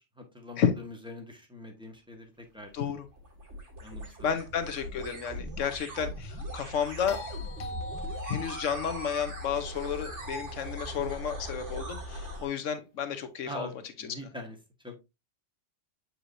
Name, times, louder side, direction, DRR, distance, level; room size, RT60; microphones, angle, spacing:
voice 1, 0.2-2.7 3.8-4.1 13.5-13.7 14.0-14.6 14.8-15.0, left 1 dB, 5° right, 1.4 m, -43 dB
sound 1, 2.6-12.5, equal, 75° right, 2.3 m, -40 dB
voice 2, 2.7-3.1 4.2-7.2 8.2-14.3, left 8 dB, 90° left, 1.2 m, -32 dB
sound 2, 7.1-11.3 13.6-13.7, left 1 dB, 65° left, 1.0 m, -44 dB
7.8 x 4.7 x 2.6 m
omnidirectional pair, 1.2 m